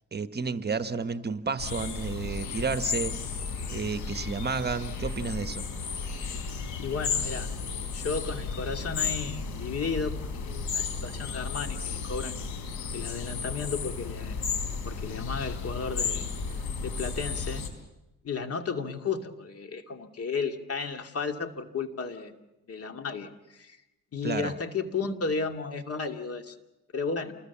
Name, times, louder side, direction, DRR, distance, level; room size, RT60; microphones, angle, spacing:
voice 1, 0.1-3.4 3.7-5.6 24.2-24.5, right 5 dB, 35° right, 10 dB, 1.2 m, -31 dB
sound 1, 1.6-17.7, left 5 dB, 85° left, 4.1 m, -33 dB
voice 2, 6.8-7.5 7.9-10.1 10.4-14.6 14.9-16.3 16.8-17.7 18.2-22.4 22.7-23.8 24.1-26.6 26.9-27.3, left 5 dB, 50° left, 6 dB, 2.6 m, -33 dB
28.5 x 21.0 x 7.3 m, 0.96 s
cardioid pair, 90°, 30 cm